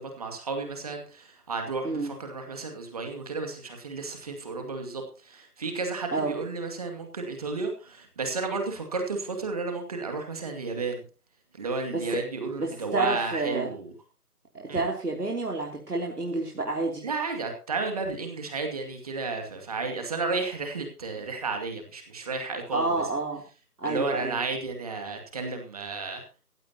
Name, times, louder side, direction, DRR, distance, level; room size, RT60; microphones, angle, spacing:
voice 1, 0.0-11.0 11.6-13.9 14.7-14.8 17.0-23.0 23.8-26.2, right 4 dB, 25° right, 4 dB, 2.3 m, -32 dB
voice 2, 12.6-13.7 14.5-17.0 22.7-23.4 23.8-24.4, right 2 dB, 80° right, 0 dB, 3.3 m, -29 dB
16.5 x 16.0 x 2.9 m, 0.36 s
figure-of-eight pair, 160°, 46 cm